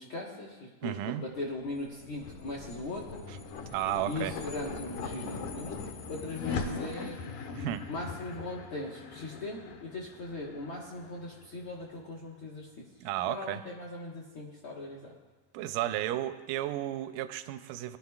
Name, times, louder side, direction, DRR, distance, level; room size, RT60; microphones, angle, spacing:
voice 1, 0.0-3.2 4.0-5.8 6.1-7.2 7.9-12.9 13.2-15.1, left 2 dB, 55° left, -3 dB, 1.5 m, -39 dB
voice 2, 0.8-1.2 3.3-3.4 3.7-4.3 7.6-7.8 13.0-13.6 15.5-18.0, right 13 dB, 85° right, 9 dB, 1.9 m, -33 dB
sound 1, 1.5-12.0, left 4 dB, 75° left, 2.1 m, -41 dB
20.5 x 11.5 x 2.4 m, 1.3 s
omnidirectional pair, 4.1 m